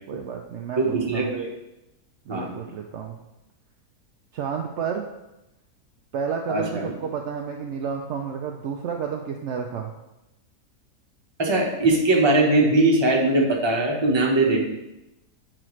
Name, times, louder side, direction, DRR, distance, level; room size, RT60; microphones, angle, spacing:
voice 1, 0.1-1.3 2.3-3.2 4.3-5.0 6.1-9.9, right 6 dB, 80° right, 2 dB, 0.6 m, -31 dB
voice 2, 0.8-1.5 2.3-2.5 6.5-6.9 11.4-14.8, right 2 dB, 20° right, -1 dB, 0.8 m, -21 dB
7.6 x 4.9 x 3.1 m, 0.93 s
omnidirectional pair, 1.7 m